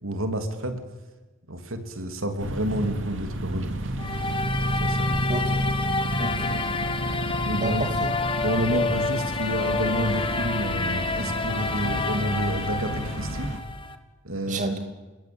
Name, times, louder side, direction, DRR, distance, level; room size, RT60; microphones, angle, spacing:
voice 1, 0.0-0.8 1.5-3.8 4.8-5.3 7.4-7.8 8.4-13.5 14.2-14.7, right 1 dB, 85° right, 6 dB, 3.2 m, -29 dB
sound 1, 2.4-13.6, right 1 dB, 65° right, 2.7 m, -31 dB
sound 2, 4.0-14.0, left 3 dB, 25° left, 1.6 m, -29 dB
voice 2, 5.3-5.7 6.2-6.7 7.5-8.1 14.5-14.8, right 2 dB, 40° right, 5 dB, 2.5 m, -30 dB
27.5 x 21.5 x 9.0 m, 1.2 s
head